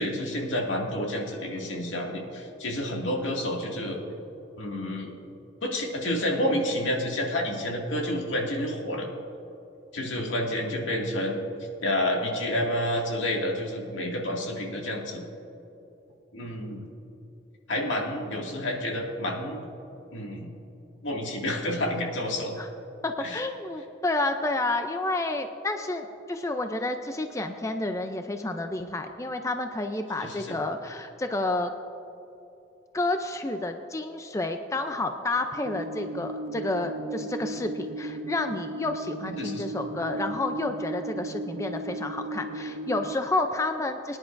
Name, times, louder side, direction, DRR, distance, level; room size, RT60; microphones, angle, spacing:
voice 1, 0.0-4.0 4.6-5.1 5.6-9.1 9.9-11.5 11.8-15.2 16.3-16.9 17.7-19.6 20.1-20.5 21.0-22.5 23.2-23.4 30.2-30.6 39.2-39.6, left 1 dB, 80° left, -1 dB, 2.1 m, -29 dB
voice 2, 23.0-31.7 32.9-44.2, left 2 dB, 15° left, 6 dB, 0.4 m, -30 dB
sound 1, 35.6-43.2, right 2 dB, 65° right, 0.4 m, -36 dB
22.0 x 10.5 x 2.6 m, 2.9 s
head